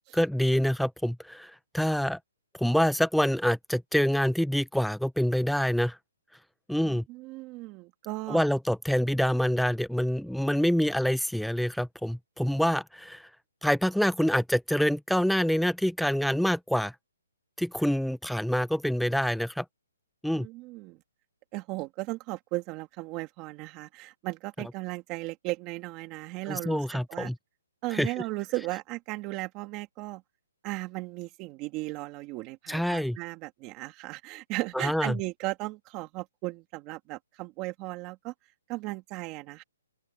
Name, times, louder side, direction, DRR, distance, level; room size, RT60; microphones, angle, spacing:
voice 1, 0.1-2.2 2.6-6.0 6.7-7.0 8.3-13.3 13.6-16.9 17.6-19.6 20.2-20.5 26.5-27.4 27.9-28.1 32.7-33.2 34.7-35.2, equal, ahead, 0.8 m, -26 dB
voice 2, 6.8-8.5 20.3-21.0 21.5-27.3 27.8-30.2 30.6-38.3 38.7-39.6, right 21 dB, 20° right, 2.9 m, -36 dB
open air
hypercardioid pair, 165°, 0 cm